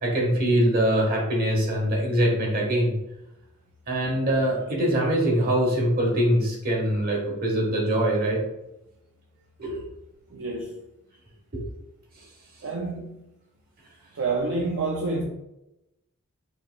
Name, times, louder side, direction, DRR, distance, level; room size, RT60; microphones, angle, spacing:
voice 1, 0.0-2.9 3.9-8.4 9.6-9.8 11.5-11.6, right 1 dB, 45° right, 1.3 m, -23 dB
voice 2, 10.3-10.8 12.6-13.1 14.1-15.2, right 3 dB, 65° right, 0.5 m, -28 dB
5.5 x 3.3 x 2.2 m
head